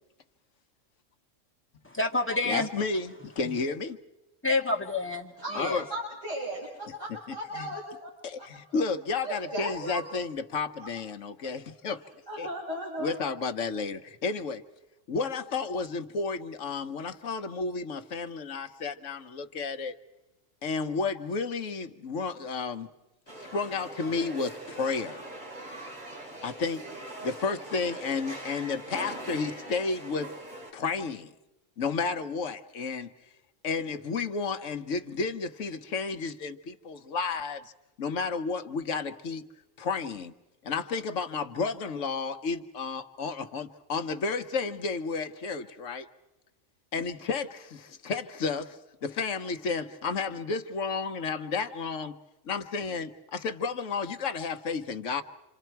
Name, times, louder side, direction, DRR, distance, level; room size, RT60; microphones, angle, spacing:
voice 1, 1.8-2.7 4.4-5.8, left 2 dB, 10° left, -1 dB, 2.0 m, -28 dB
voice 2, 2.4-4.0 5.5-5.8 7.5-7.7 8.2-12.0 12.4-12.5 13.0-14.6 15.1-19.9 20.6-22.9 23.5-25.2 26.4-26.9 27.2-30.3 30.7-31.3 31.8-33.1 33.6-37.7 38.0-39.5 39.8-40.3 40.6-46.1 46.9-52.2 52.4-55.2, left 4 dB, 75° left, 8 dB, 1.3 m, -32 dB
voice 3, 5.4-8.1 8.4-8.8 9.2-10.0 11.4-11.5 12.3-13.2, right 1 dB, 70° right, -5 dB, 5.7 m, -36 dB
sound 1, 23.3-30.7, right 1 dB, 35° right, 2.8 m, -42 dB
28.5 x 26.5 x 4.6 m, 0.96 s
omnidirectional pair, 1.3 m